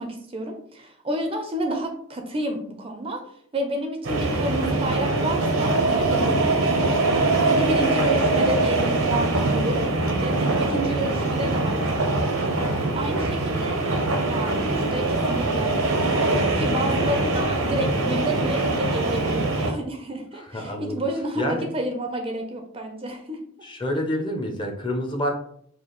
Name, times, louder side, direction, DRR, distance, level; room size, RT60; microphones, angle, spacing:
voice 1, 0.0-3.2 3.5-6.6 7.4-12.1 12.6-13.8 14.3-15.8 16.3-23.4, right 1 dB, 25° right, 4 dB, 0.4 m, -30 dB
sound 1, 4.0-19.7, right 2 dB, 80° right, 0.7 m, -23 dB
voice 2, 20.3-21.0 21.4-21.7 23.6-25.3, equal, 20° left, 2 dB, 0.6 m, -28 dB
4.8 x 2.4 x 3.0 m, 0.64 s
head